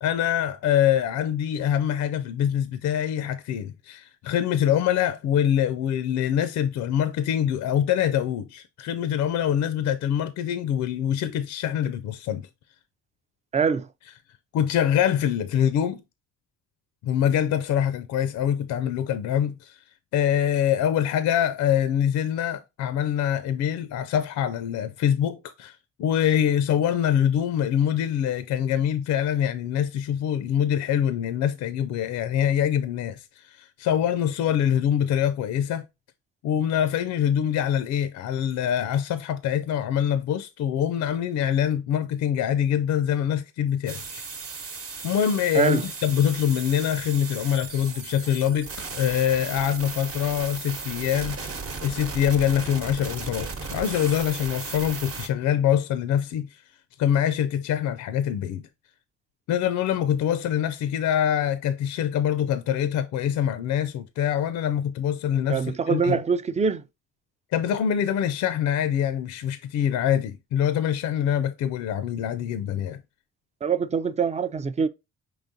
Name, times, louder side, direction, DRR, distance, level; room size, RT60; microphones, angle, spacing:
voice 1, 0.0-12.5 14.5-16.0 17.0-19.8 20.1-35.8 36.4-44.2 45.0-56.6 57.0-58.6 59.5-66.2 67.5-73.0, left 9 dB, 70° left, 0.5 m, -24 dB
voice 2, 13.5-13.9 45.5-45.8 65.5-66.8 73.6-74.9, right 6 dB, 25° right, 0.3 m, -24 dB
sound 1, 43.9-55.3, right 4 dB, 50° right, 1.0 m, -36 dB
4.9 x 3.8 x 2.6 m
cardioid pair, 90°, 30 cm